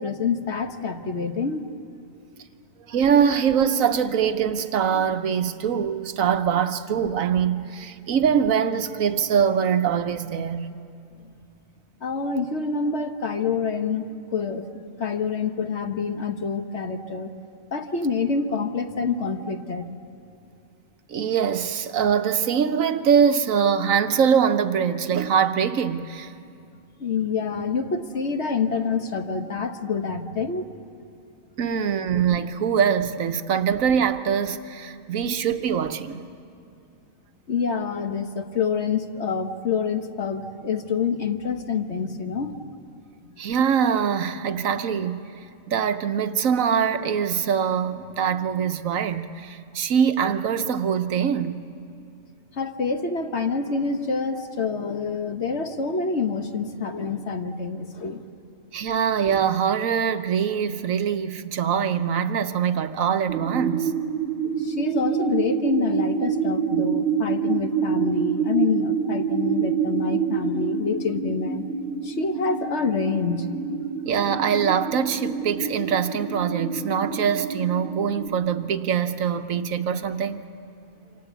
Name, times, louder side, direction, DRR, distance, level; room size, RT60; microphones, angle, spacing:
voice 1, 0.0-1.6 11.2-11.3 12.0-14.7 15.0-17.3 17.7-19.9 27.0-30.7 37.5-42.7 52.5-58.3 64.4-71.6 72.0-73.5, left 5 dB, 60° left, 6 dB, 1.5 m, -27 dB
voice 2, 2.9-10.7 21.1-26.3 31.6-36.3 43.4-45.3 45.7-51.7 58.7-63.9 74.0-80.5, right 7 dB, 85° right, 9 dB, 1.3 m, -23 dB
sound 1, 63.3-78.3, right 6 dB, 65° right, 2.7 m, -27 dB
28.0 x 25.5 x 8.2 m, 2.5 s
omnidirectional pair, 1.4 m